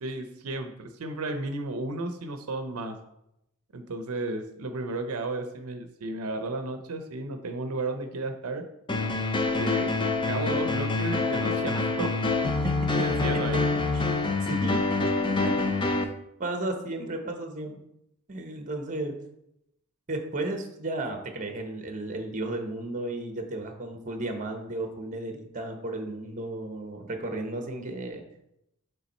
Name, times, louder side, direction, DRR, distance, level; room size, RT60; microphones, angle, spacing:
voice 1, 0.0-3.0 3.7-8.6 9.5-9.9 10.3-12.2 12.9-13.6, right 2 dB, 80° right, 7 dB, 0.6 m, -33 dB
sound 1, 8.9-16.0, left 3 dB, 20° left, 0.5 m, -26 dB
voice 2, 14.4-14.8 15.3-15.5 16.4-17.8 18.3-19.1 20.1-28.2, right 2 dB, 35° right, 5 dB, 0.8 m, -34 dB
7.2 x 3.4 x 4.2 m, 0.81 s
head